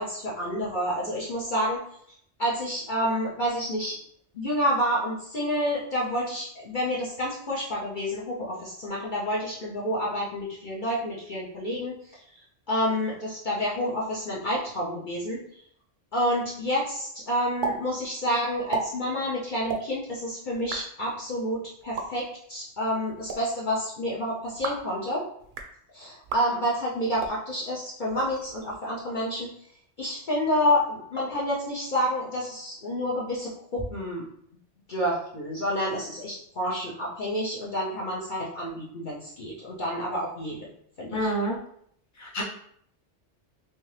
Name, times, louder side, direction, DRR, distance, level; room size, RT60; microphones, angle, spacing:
voice 1, 0.0-1.8 2.1-3.9 4.3-12.2 12.7-15.4 16.1-25.2 25.9-29.5 30.0-34.2 34.9-40.7 41.0-41.3, equal, 50° left, -6 dB, 0.8 m, -29 dB
sound 1, 17.6-17.8 18.0-18.1 18.5-18.8 19.6-19.8 20.5-20.8 21.8-22.1 23.1-23.4 24.4-24.9 25.4-25.7 26.2-26.4 27.1-27.4 28.1-28.8, right 4 dB, 60° right, 0.6 m, -33 dB
voice 2, 41.1-41.6 42.2-42.4, right 1 dB, 15° left, -5 dB, 0.8 m, -27 dB
3.4 x 2.9 x 3.2 m, 0.68 s
omnidirectional pair, 1.2 m